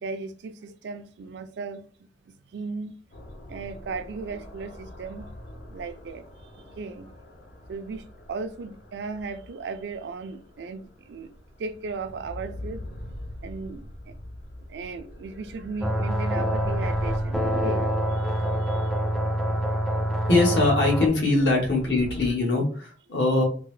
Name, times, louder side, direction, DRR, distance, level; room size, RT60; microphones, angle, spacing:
voice 1, 0.0-1.9 2.2-3.0 3.5-5.3 5.7-6.2 6.5-7.1 7.7-11.3 11.6-12.8 13.1-13.2 13.4-14.1 14.7-18.9, right 4 dB, 75° right, 0.4 m, -36 dB
sound 1, 3.1-22.3, left 1 dB, 60° left, 0.5 m, -43 dB
sound 2, 15.8-21.1, equal, ahead, 0.4 m, -26 dB
voice 2, 20.3-23.4, left 2 dB, 75° left, 1.2 m, -22 dB
3.7 x 2.0 x 3.1 m
head